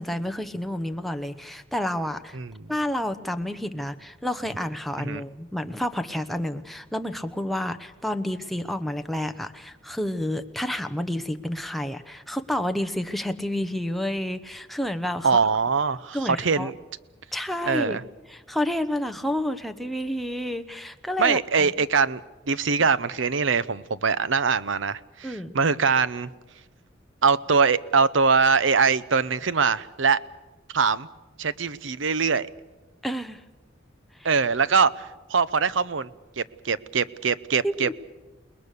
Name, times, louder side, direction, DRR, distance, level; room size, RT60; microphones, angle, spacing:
voice 1, 0.0-2.4 2.7-15.3 16.1-16.7 17.3-18.0 18.3-21.7 25.2-25.5 33.0-33.4 34.2-34.3 37.6-37.9, left 1 dB, ahead, 8 dB, 0.9 m, -30 dB
voice 2, 15.2-16.7 17.7-18.0 21.2-22.2 22.5-26.3 27.2-30.2 30.7-31.1 31.4-32.5 34.2-36.1 36.4-37.9, right 5 dB, 70° right, 17 dB, 0.8 m, -23 dB
29.0 x 20.0 x 6.7 m, 1.1 s
head